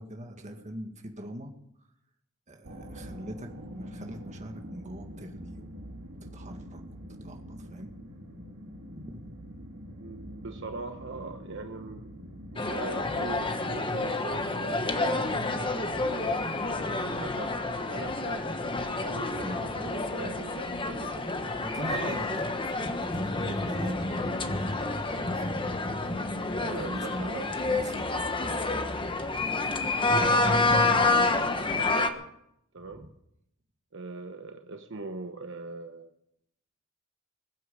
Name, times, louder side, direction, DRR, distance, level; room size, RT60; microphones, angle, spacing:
voice 1, 0.0-1.5 2.5-5.8 6.2-6.8 7.2-7.9 8.9-9.3 19.4-20.0 21.6-22.3 22.7-26.2 26.7-28.5 32.9-33.1, equal, 35° right, 4 dB, 2.0 m, -42 dB
sound 1, 2.6-13.5, equal, 80° right, 2.6 m, -45 dB
voice 2, 10.0-12.2 12.5-17.5 17.9-18.5 19.0-21.3 21.9-22.2 26.5-27.5 30.2-32.3 32.7-33.1 33.9-36.1, right 3 dB, 60° right, 6 dB, 1.1 m, -41 dB
sound 2, 12.6-32.1, left 2 dB, 25° left, 1.3 m, -28 dB
21.5 x 9.3 x 7.1 m, 0.77 s
head